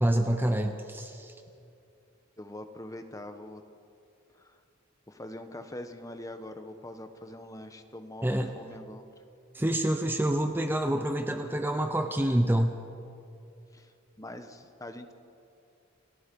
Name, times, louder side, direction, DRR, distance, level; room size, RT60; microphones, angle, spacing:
voice 1, 0.0-1.3 8.2-8.5 9.5-12.7, right 1 dB, 10° right, 6 dB, 0.8 m, -27 dB
voice 2, 2.4-3.6 4.3-4.6 5.1-8.3 8.6-9.1 13.7-13.9 14.2-15.1, left 1 dB, 15° left, 7 dB, 1.1 m, -43 dB
29.0 x 18.0 x 5.4 m, 2.6 s
head